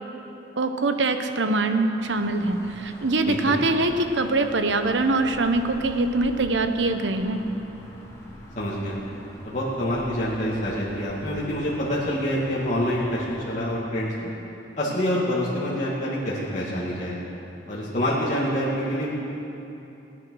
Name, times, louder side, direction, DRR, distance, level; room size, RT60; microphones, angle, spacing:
voice 1, 0.6-7.4, right 2 dB, 85° right, 7 dB, 1.0 m, -23 dB
sound 1, 2.0-13.6, equal, 15° left, 2.4 m, -44 dB
voice 2, 3.3-3.6 8.6-9.0 9.4-14.3 14.8-17.1 17.7-19.1, equal, 40° left, -8 dB, 2.0 m, -26 dB
18.5 x 9.7 x 6.2 m, 3.0 s
head